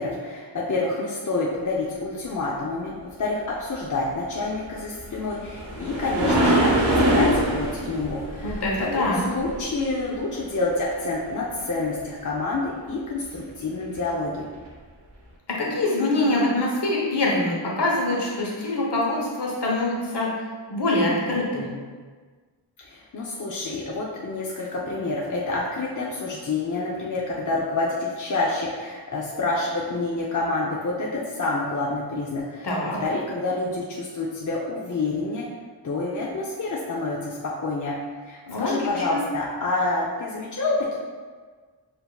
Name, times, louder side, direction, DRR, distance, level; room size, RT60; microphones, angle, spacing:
voice 1, 0.0-8.6 8.9-14.4 22.8-35.5 35.8-38.0 38.2-41.0, left 2 dB, 40° left, -4 dB, 0.6 m, -28 dB
sound 1, 4.8-10.0 13.9-14.0 14.7-14.8, right 1 dB, 65° right, 1.0 m, -23 dB
voice 2, 8.4-9.2 15.5-20.3 20.7-21.7 32.6-33.0 38.5-39.2, left 2 dB, 60° left, -3 dB, 1.1 m, -24 dB
6.9 x 2.8 x 2.3 m, 1.5 s
wide cardioid pair, 70°, 45 cm